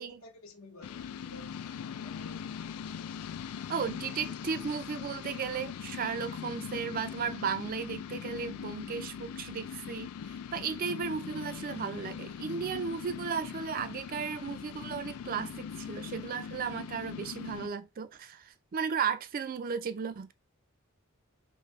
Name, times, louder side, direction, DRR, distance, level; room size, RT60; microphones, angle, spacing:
voice 1, 0.0-2.5, left 1 dB, 70° left, 0.8 m, -53 dB
sound 1, 0.8-17.7, left 7 dB, 90° left, 0.3 m, -41 dB
voice 2, 3.7-20.3, right 6 dB, 40° right, 0.4 m, -35 dB
3.9 x 2.7 x 3.1 m
head